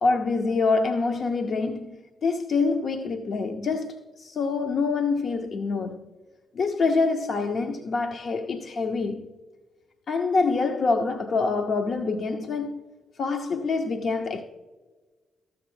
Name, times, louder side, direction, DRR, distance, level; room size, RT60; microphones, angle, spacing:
voice 1, 0.0-6.0 6.5-9.3 10.1-12.8 13.2-14.4, left 4 dB, 60° left, 0.6 m, -26 dB
13.5 x 7.1 x 3.1 m
hypercardioid pair, 40°, 0 cm